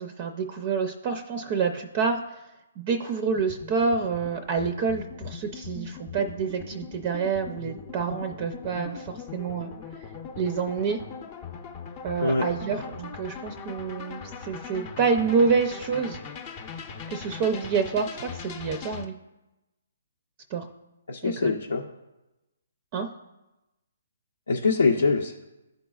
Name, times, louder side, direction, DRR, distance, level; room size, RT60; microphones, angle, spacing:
voice 1, 0.0-2.2 2.8-9.7 10.4-11.0 12.0-16.2 17.1-19.2 20.5-20.7 21.2-21.6 22.9-23.1, right 5 dB, 35° right, 6 dB, 0.5 m, -27 dB
sound 1, 3.3-19.1, left 6 dB, 30° left, 0.6 m, -40 dB
voice 2, 21.1-21.8 24.5-25.4, left 4 dB, 85° left, -1 dB, 0.6 m, -24 dB
12.0 x 4.0 x 2.3 m, 0.99 s
hypercardioid pair, 150°, 0 cm